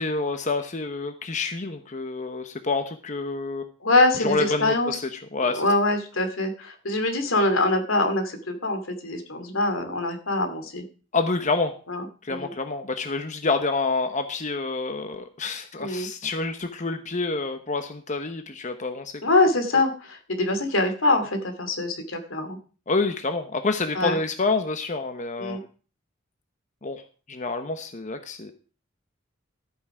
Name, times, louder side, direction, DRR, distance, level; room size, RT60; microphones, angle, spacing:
voice 1, 0.0-3.7 4.2-5.7 11.1-11.7 12.2-19.1 22.9-25.6 26.8-27.0 27.3-28.5, left 3 dB, 40° left, 7 dB, 1.0 m, -28 dB
voice 2, 3.8-5.0 5.6-10.8 11.9-12.5 15.8-16.1 19.2-22.6 23.9-24.2 25.4-25.6, left 2 dB, 85° left, 6 dB, 2.7 m, -24 dB
13.5 x 9.3 x 4.9 m, 0.38 s
head